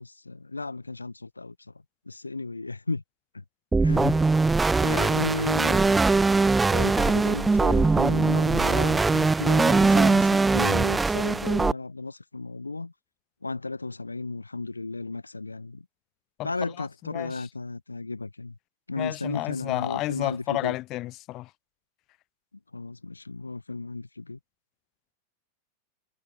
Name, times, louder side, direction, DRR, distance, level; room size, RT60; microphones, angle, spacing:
voice 1, 0.0-1.5 2.1-3.0 3.3-3.4 3.8-4.2 4.8-6.2 6.6-12.9 13.4-15.8 16.4-18.5 18.9-20.8 22.7-24.4, left 3 dB, 80° left, 3.7 m, -34 dB
sound 1, 3.7-11.7, right 3 dB, 10° right, 4.6 m, -21 dB
voice 2, 16.8-17.5 19.0-21.5, left 17 dB, 35° left, 4.6 m, -31 dB
figure-of-eight pair, 90°, 0 cm